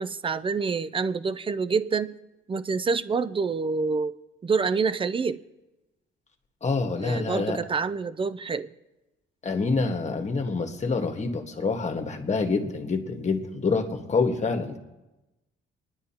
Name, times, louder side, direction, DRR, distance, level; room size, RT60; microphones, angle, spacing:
voice 1, 0.0-2.1 2.5-4.2 4.4-5.4 7.0-8.7, right 4 dB, 25° right, 14 dB, 0.5 m, -27 dB
voice 2, 6.6-7.6 9.4-14.8, left 4 dB, 35° left, 5 dB, 1.5 m, -27 dB
29.0 x 10.5 x 2.9 m, 1.0 s
cardioid pair, 90°, 20 cm